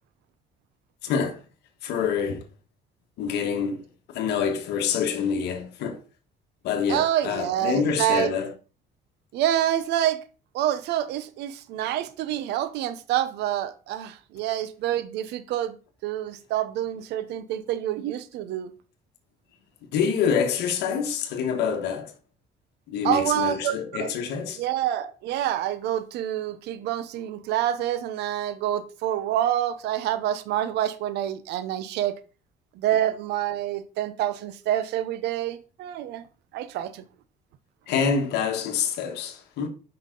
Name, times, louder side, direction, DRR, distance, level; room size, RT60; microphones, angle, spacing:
voice 1, 1.0-1.4 1.8-2.5 3.2-3.8 4.1-6.0 6.6-8.5 19.9-22.1 22.9-24.6 37.9-39.7, left 6 dB, 80° left, 1.5 m, -26 dB
voice 2, 6.9-8.3 9.3-10.2 10.5-15.8 16.0-18.7 23.0-24.1 24.6-32.1 32.7-36.3 36.5-37.0, right 12 dB, 85° right, 0.9 m, -27 dB
8.6 x 5.7 x 3.9 m
cardioid pair, 110°, 17 cm